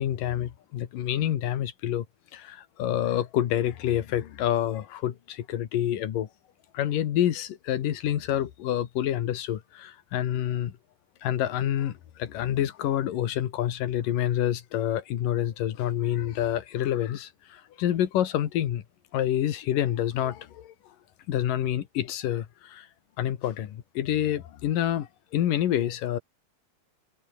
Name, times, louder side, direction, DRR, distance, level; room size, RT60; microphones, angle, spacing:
voice 1, 0.0-2.1 2.3-6.3 6.7-10.7 11.2-18.8 19.1-20.7 21.3-22.9 23.2-26.2, left 11 dB, 75° left, 3.3 m, -28 dB
omnidirectional pair, 3.9 m